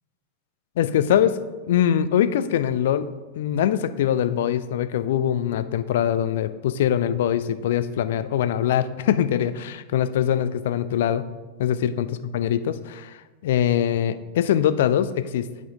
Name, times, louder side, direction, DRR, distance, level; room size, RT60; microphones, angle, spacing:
voice 1, 0.8-1.4 1.7-3.1 3.4-11.2 11.6-15.5, left 10 dB, 55° left, 13 dB, 0.3 m, -23 dB
8.4 x 5.0 x 3.7 m, 1.2 s
figure-of-eight pair, 90°, 0 cm